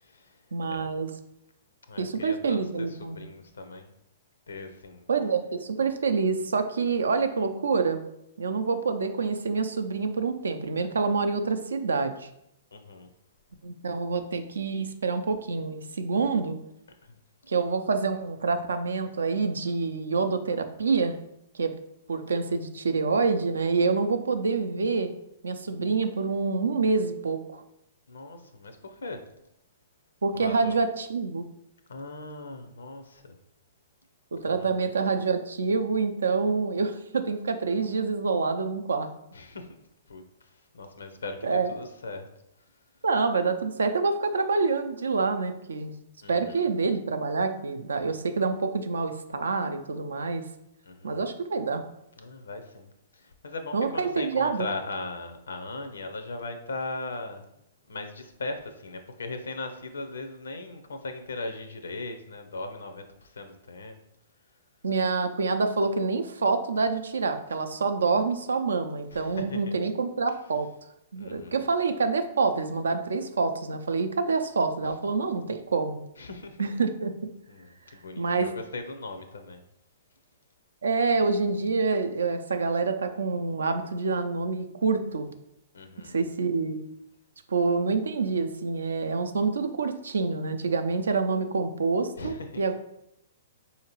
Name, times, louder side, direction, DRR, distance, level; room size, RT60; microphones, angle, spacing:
voice 1, 0.0-0.8 1.9-3.9 4.5-5.1 5.8-5.9 12.7-13.1 17.1-17.2 28.1-29.2 30.4-30.8 31.9-33.3 34.5-34.8 39.3-39.7 40.1-40.2 40.7-42.3 46.2-46.7 50.9-51.2 52.2-57.4 57.9-64.0 69.1-69.6 71.2-71.6 76.2-76.7 77.5-79.6 85.7-86.2 92.2-92.6, left 2 dB, 75° left, 7 dB, 0.6 m, -39 dB
voice 2, 0.5-1.1 2.0-3.2 5.1-8.0 8.4-12.3 13.6-16.6 17.5-21.2 21.5-21.7 22.1-25.1 25.4-27.6 30.2-31.4 34.3-39.1 41.4-41.7 43.0-46.0 46.3-50.4 51.0-51.8 53.7-54.7 64.8-70.7 71.1-76.0 76.6-77.3 78.2-78.5 80.8-85.3 86.0-86.8 87.5-92.7, right 4 dB, 75° right, 8 dB, 0.4 m, -27 dB
4.7 x 2.8 x 3.0 m, 0.79 s
figure-of-eight pair, 115°, 0 cm